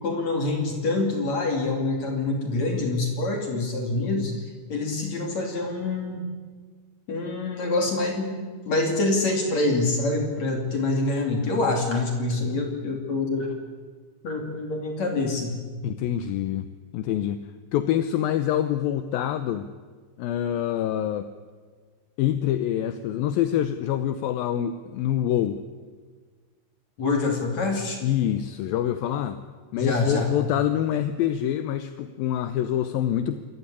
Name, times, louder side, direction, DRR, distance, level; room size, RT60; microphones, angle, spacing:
voice 1, 0.0-6.2 7.1-13.5 14.2-15.5 27.0-28.0 29.8-30.3, left 2 dB, 50° left, 3 dB, 3.7 m, -26 dB
voice 2, 15.8-19.7 20.2-21.3 22.2-25.6 28.0-29.4 29.7-33.4, left 11 dB, 75° left, 11 dB, 2.5 m, -26 dB
27.0 x 14.5 x 9.9 m, 1.5 s
omnidirectional pair, 4.4 m